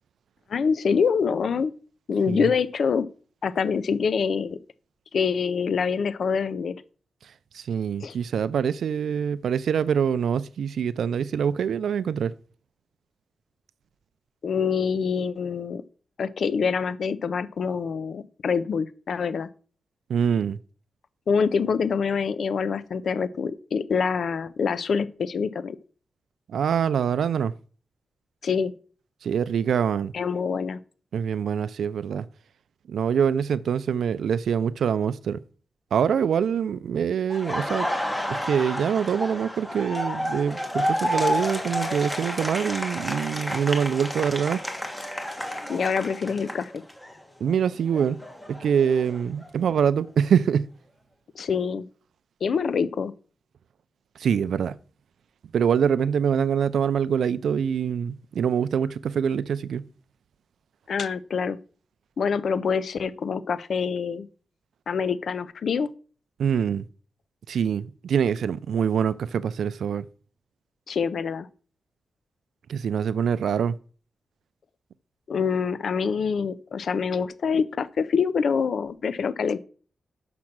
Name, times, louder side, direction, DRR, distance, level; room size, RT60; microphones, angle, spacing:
voice 1, 0.5-1.7 2.1-3.1 3.4-4.6 5.1-6.8 8.0-8.1 14.4-15.8 16.2-19.5 21.3-25.8 28.4-28.7 30.1-30.8 45.7-46.8 51.4-51.9 52.4-53.1 60.9-61.6 62.2-64.3 64.9-65.9 70.9-71.5 75.3-79.6, left 6 dB, 65° left, 0.4 m, -25 dB
voice 2, 7.2-12.3 20.1-20.6 26.5-27.5 29.2-30.1 31.1-32.3 32.9-35.4 35.9-37.9 38.3-44.6 47.4-48.2 48.5-50.7 54.2-54.8 55.5-59.8 66.4-66.8 67.5-70.1 72.7-73.7, right 7 dB, 85° right, 0.4 m, -24 dB
Laughter, 37.3-47.1 47.5-49.5, equal, 10° left, 1.3 m, -30 dB
6.3 x 6.0 x 5.9 m
wide cardioid pair, 135°, 0 cm